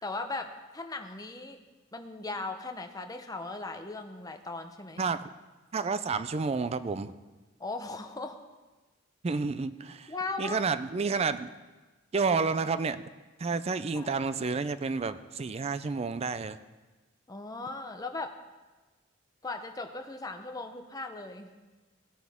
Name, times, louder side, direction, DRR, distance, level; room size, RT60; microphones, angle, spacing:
voice 1, 0.0-1.6 1.9-5.1 7.6-8.4 10.1-10.6 13.9-14.1 17.3-18.4 19.4-21.5, left 3 dB, 20° left, 5 dB, 0.8 m, -38 dB
voice 2, 5.0-5.3 5.7-7.1 9.2-10.1 10.4-11.5 12.1-13.0 13.4-16.6, right 4 dB, 30° right, 12 dB, 0.4 m, -30 dB
17.0 x 9.7 x 3.6 m, 1.2 s
head